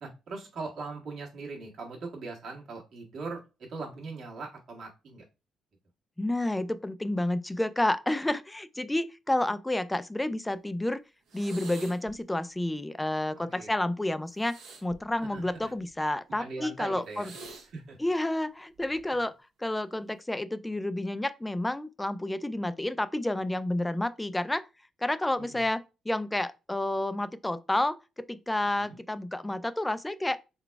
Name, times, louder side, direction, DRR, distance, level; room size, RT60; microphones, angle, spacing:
voice 1, 0.0-3.4 3.7-5.2 13.5-13.7 15.2-15.7 16.4-17.3 17.7-18.0 25.4-25.6 28.8-29.0, right 3 dB, 60° right, 1.6 m, -40 dB
voice 2, 6.2-11.0 11.3-17.3 18.0-24.7 25.0-28.0 28.3-30.4, left 1 dB, 10° left, 0.3 m, -30 dB
sound 1, 11.3-12.2 14.3-15.9 17.1-17.7 18.8-19.1, right 4 dB, 85° right, 1.3 m, -48 dB
3.9 x 2.2 x 4.5 m
cardioid pair, 90°, 0 cm